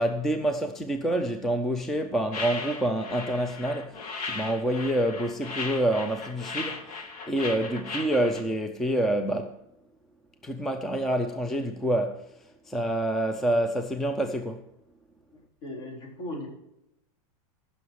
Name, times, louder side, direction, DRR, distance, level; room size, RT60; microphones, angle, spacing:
voice 1, 0.0-9.6 10.4-14.7, right 1 dB, ahead, 0.3 m, -27 dB
sound 1, 2.3-8.4, left 4 dB, 85° left, 2.0 m, -37 dB
voice 2, 15.6-16.5, left 1 dB, 55° left, 4.2 m, -37 dB
15.0 x 6.3 x 4.7 m
supercardioid pair, 165°, 19 cm